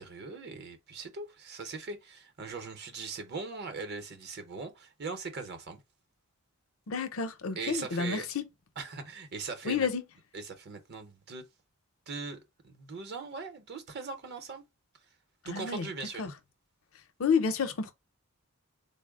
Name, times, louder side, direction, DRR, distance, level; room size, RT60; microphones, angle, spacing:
voice 1, 0.0-5.8 7.6-8.3 8.8-9.9 10.3-11.5 12.1-14.6 15.4-16.2, right 4 dB, 50° right, 0.7 m, -40 dB
voice 2, 6.9-8.4 9.6-10.0 15.4-15.9 16.2-16.3 17.2-17.9, left 5 dB, 70° left, 0.6 m, -30 dB
3.8 x 2.0 x 3.5 m
head